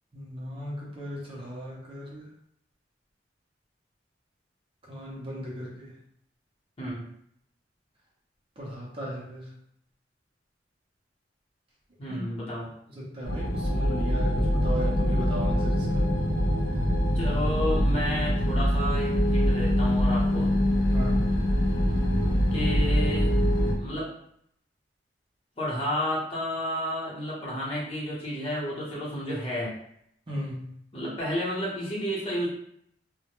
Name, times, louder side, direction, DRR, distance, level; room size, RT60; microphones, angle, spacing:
voice 1, 0.1-2.3 4.8-6.0 8.6-9.5 12.1-12.2 12.9-16.1 20.9-21.2 30.3-30.7, equal, 30° right, -5 dB, 0.6 m, -36 dB
voice 2, 6.8-7.1 12.0-12.7 17.1-20.6 22.5-23.3 23.8-24.1 25.6-29.8 30.9-32.5, equal, 35° left, -7 dB, 0.8 m, -31 dB
sound 1, 13.2-23.7, equal, 70° left, 0.5 m, -24 dB
2.1 x 2.1 x 2.9 m, 0.71 s
head